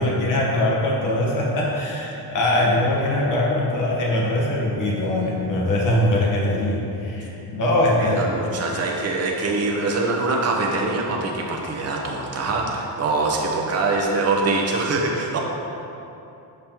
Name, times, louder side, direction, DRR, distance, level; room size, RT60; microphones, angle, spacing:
voice 1, 0.0-8.3, left 1 dB, 50° left, -3 dB, 1.2 m, -22 dB
voice 2, 8.0-15.4, right 3 dB, 40° right, -1 dB, 0.9 m, -24 dB
7.7 x 5.1 x 2.9 m, 2.9 s
cardioid pair, 150°, 41 cm